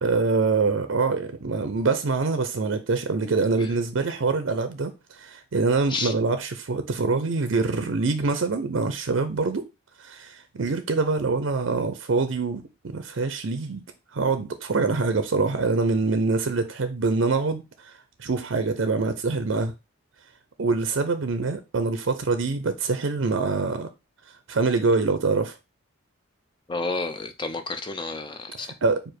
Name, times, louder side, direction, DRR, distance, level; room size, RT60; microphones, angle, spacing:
voice 1, 0.0-9.7 10.0-13.8 14.1-17.9 18.2-19.7 20.6-23.9 24.5-25.6 28.6-29.1, right 4 dB, 65° right, 0.5 m, -25 dB
voice 2, 26.7-28.7, left 3 dB, 20° left, 0.4 m, -30 dB
4.8 x 2.5 x 4.4 m
head